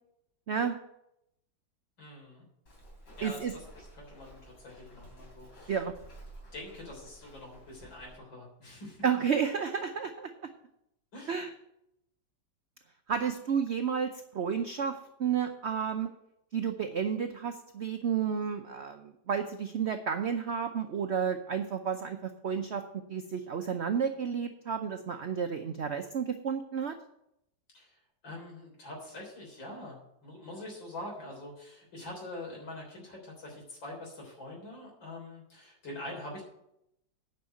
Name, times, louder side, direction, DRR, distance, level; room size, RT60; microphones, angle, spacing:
voice 1, 2.0-2.4 3.2-5.8 6.5-9.0 11.1-11.4 27.7-27.9 28.2-36.4, left 1 dB, 80° left, -1 dB, 4.2 m, -44 dB
Walk footsteps, 2.7-8.2, right 1 dB, 65° left, 3.9 m, -52 dB
voice 2, 3.2-3.5 5.7-5.9 9.0-10.3 11.3-11.5 13.1-16.1 16.5-22.8 23.1-27.0, right 7 dB, 70° right, 6 dB, 0.6 m, -31 dB
9.8 x 5.6 x 7.7 m, 0.80 s
omnidirectional pair, 2.0 m